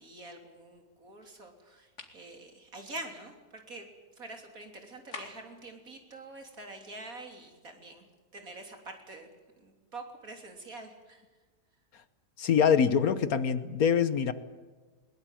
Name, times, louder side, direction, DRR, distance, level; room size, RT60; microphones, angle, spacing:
voice 1, 0.0-3.9 4.2-8.1 8.3-9.3 9.6-11.2, right 2 dB, 55° right, 4 dB, 3.7 m, -46 dB
sound 1, 2.0-2.2 5.1-5.6, left 3 dB, 45° left, 2.7 m, -44 dB
voice 2, 12.4-14.3, left 7 dB, 65° left, 13 dB, 1.4 m, -24 dB
21.5 x 21.0 x 9.0 m, 1.3 s
omnidirectional pair, 1.7 m